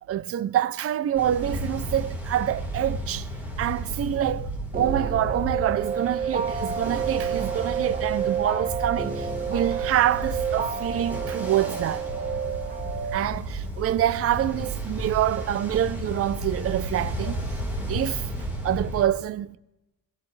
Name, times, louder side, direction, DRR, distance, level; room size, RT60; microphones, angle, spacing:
voice 1, 0.1-3.3 3.6-4.5 4.7-12.0 13.1-17.5 17.9-18.3 18.6-19.6, right 11 dB, 40° right, 0.5 m, -26 dB
Ocean, 1.1-19.1, right 1 dB, 5° right, 3.9 m, -33 dB
sound 1, 4.7-13.2, right 7 dB, 25° right, 1.2 m, -30 dB
22.0 x 17.0 x 3.2 m
cardioid pair, 170°, 35 cm